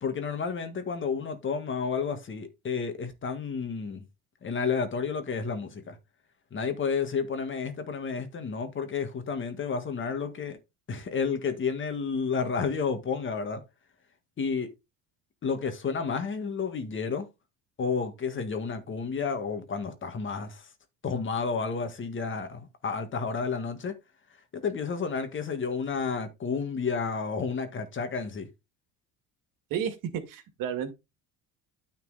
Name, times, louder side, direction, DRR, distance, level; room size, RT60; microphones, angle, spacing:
voice 1, 0.0-4.1 4.4-6.0 6.5-10.6 10.9-13.6 14.4-14.7 15.4-17.3 17.8-20.7 21.0-24.0 24.5-28.5, left 5 dB, 30° left, 1.7 m, -31 dB
voice 2, 30.3-30.9, right 8 dB, 60° right, 2.1 m, -31 dB
9.4 x 4.4 x 4.0 m
cardioid pair, 120°, 37 cm